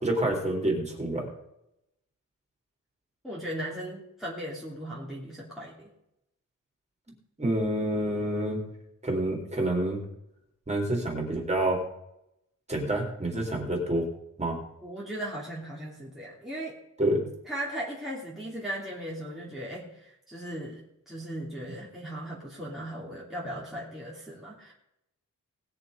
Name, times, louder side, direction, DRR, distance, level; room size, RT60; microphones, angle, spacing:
voice 1, 0.0-1.3 7.4-8.7 9.0-10.0 10.7-11.8 12.7-14.1 14.4-14.6 17.0-17.3, right 1 dB, 20° right, 0 dB, 3.9 m, -28 dB
voice 2, 3.2-5.9 14.8-16.8 17.4-24.7, right 1 dB, ahead, -6 dB, 3.0 m, -37 dB
20.0 x 7.0 x 5.2 m, 0.82 s
wide cardioid pair, 130°, 32 cm